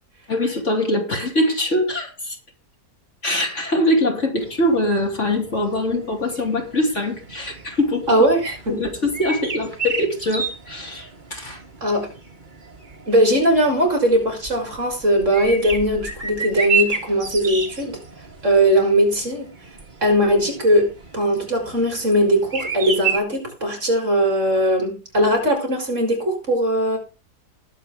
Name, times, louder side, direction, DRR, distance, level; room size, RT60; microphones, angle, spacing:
voice 1, 0.3-2.4 3.2-8.3 8.7-11.6, left 1 dB, 45° left, 2 dB, 3.2 m, -23 dB
sound 1, 4.4-23.2, right 5 dB, 30° right, 1.8 m, -32 dB
voice 2, 8.1-8.8 11.8-12.1 13.1-18.0 18.4-19.5 20.0-27.0, equal, 45° right, 2 dB, 4.8 m, -19 dB
20.0 x 7.8 x 3.7 m, 0.31 s
omnidirectional pair, 1.7 m